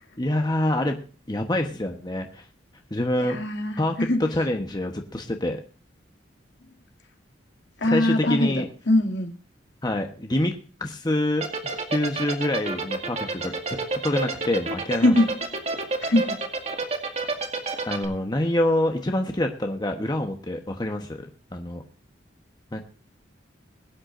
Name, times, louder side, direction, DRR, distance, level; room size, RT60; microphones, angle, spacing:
voice 1, 0.2-1.0 1.3-2.4 2.9-3.4 3.8-4.0 4.3-5.6 7.9-8.7 9.8-10.5 10.8-11.5 11.9-13.5 14.0-15.1 17.8-21.3 21.5-21.8 22.7-22.8, left 1 dB, 25° left, 4 dB, 1.2 m, -26 dB
voice 2, 3.2-4.2 7.8-9.3 15.0-15.3 16.0-16.4, left 1 dB, 70° left, 3 dB, 2.6 m, -22 dB
sound 1, 11.4-18.1, right 3 dB, 35° right, 2.1 m, -28 dB
22.0 x 9.7 x 2.6 m, 0.38 s
head